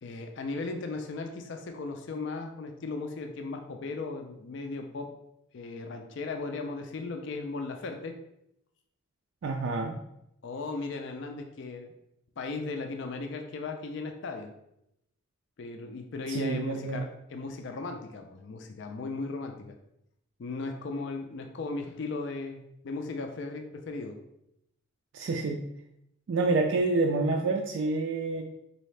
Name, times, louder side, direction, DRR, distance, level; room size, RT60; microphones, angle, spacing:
voice 1, 0.0-5.1 5.5-8.2 10.4-11.9 12.4-14.5 15.6-19.8 20.4-24.2, left 3 dB, 55° left, 4 dB, 0.4 m, -37 dB
voice 2, 9.4-10.0 16.3-17.1 25.1-25.6 26.3-28.4, right 3 dB, 60° right, 1 dB, 0.3 m, -28 dB
4.0 x 2.7 x 3.2 m, 0.80 s
head